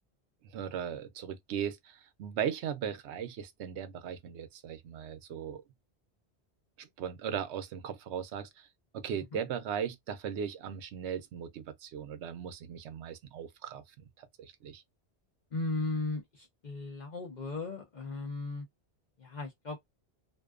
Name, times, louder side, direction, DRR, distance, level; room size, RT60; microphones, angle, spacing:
voice 1, 0.5-5.6 6.8-8.7 8.9-13.8 14.2-14.8, right 8 dB, 80° right, 0.8 m, -38 dB
voice 2, 15.5-18.7 19.2-19.8, left 3 dB, 50° left, 0.7 m, -36 dB
2.5 x 2.2 x 2.3 m
omnidirectional pair, 1.1 m